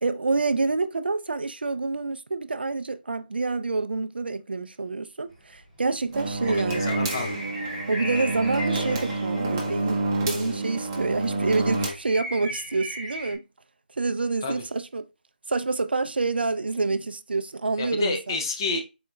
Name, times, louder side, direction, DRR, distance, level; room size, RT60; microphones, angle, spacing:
voice 1, 0.0-6.8 7.9-13.4 14.0-15.0 15.5-18.4, right 3 dB, 85° right, 0.4 m, -27 dB
sound 1, 5.3-5.4 6.1-10.5 10.8-10.9 11.1-11.2 11.5-13.3, equal, ahead, 1.7 m, -37 dB
sound 2, 6.1-11.9, right 2 dB, 20° right, 0.7 m, -28 dB
voice 2, 6.5-7.5 14.4-14.6 17.8-18.8, left 3 dB, 25° left, 0.7 m, -30 dB
4.2 x 3.9 x 2.2 m
figure-of-eight pair, 165°, 5 cm